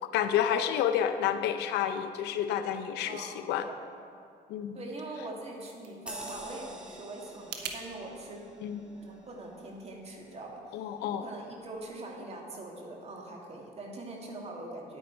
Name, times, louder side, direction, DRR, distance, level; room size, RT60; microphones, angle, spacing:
voice 1, 0.0-3.7 4.5-4.8 8.6-8.8 10.7-11.3, left 9 dB, 85° left, 9 dB, 0.6 m, -30 dB
voice 2, 3.0-3.8 4.7-8.5 8.8-15.0, right 2 dB, 40° right, 0 dB, 1.9 m, -43 dB
sound 1, 5.2-7.8, right 7 dB, 80° right, 1.0 m, -45 dB
sound 2, 6.1-11.0 11.5-11.6, right 1 dB, 5° right, 1.8 m, -48 dB
9.5 x 9.2 x 4.4 m, 2.3 s
cardioid pair, 110°, 17 cm